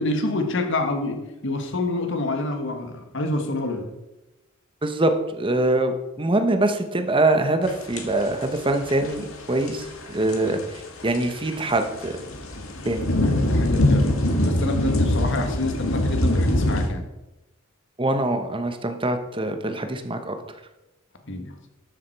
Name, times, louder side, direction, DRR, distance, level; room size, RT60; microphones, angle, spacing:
voice 1, 0.0-3.9 10.2-10.6 13.2-14.1 14.4-17.0 21.2-21.6, left 2 dB, 65° left, 5 dB, 1.6 m, -27 dB
voice 2, 4.8-12.2 12.8-13.0 18.0-20.4, right 2 dB, 25° right, 7 dB, 1.1 m, -24 dB
sound 1, 7.7-8.4 8.9-9.2 9.5-10.5 11.0-16.9, left 1 dB, 85° left, 1.8 m, -22 dB
12.5 x 7.2 x 4.7 m, 0.97 s
head